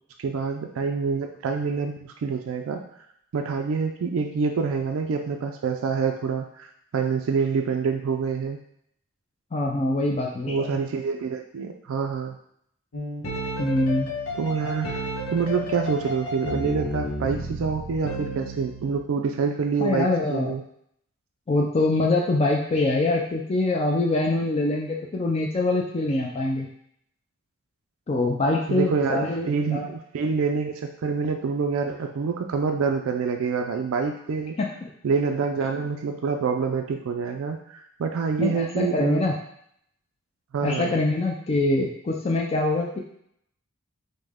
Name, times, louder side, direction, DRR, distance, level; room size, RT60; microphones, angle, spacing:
voice 1, 0.2-2.8 3.3-8.6 10.5-12.4 14.3-15.0 15.3-20.6 28.7-34.5 35.0-39.2 40.5-40.9, right 5 dB, 80° right, 4 dB, 0.4 m, -26 dB
voice 2, 9.5-10.8 13.6-14.1 19.8-20.6 21.5-26.7 28.1-29.9 34.6-34.7 38.4-39.3 40.6-43.0, left 2 dB, 30° left, -1 dB, 0.4 m, -24 dB
sound 1, 12.9-19.0, equal, 85° left, 0.9 m, -32 dB
5.2 x 2.1 x 3.5 m, 0.71 s
head